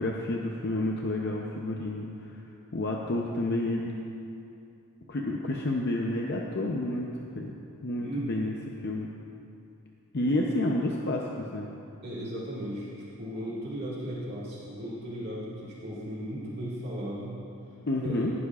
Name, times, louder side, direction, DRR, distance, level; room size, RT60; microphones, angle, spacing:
voice 1, 0.0-2.3 2.7-3.9 5.1-7.5 7.8-8.5 8.8-9.1 10.1-11.7 17.9-18.3, left 1 dB, 50° left, 0 dB, 0.7 m, -30 dB
voice 2, 8.0-8.5 10.2-10.3 12.0-12.9 13.2-17.4 18.0-18.3, equal, 50° right, -8 dB, 1.9 m, -36 dB
18.0 x 11.0 x 2.4 m, 2.7 s
head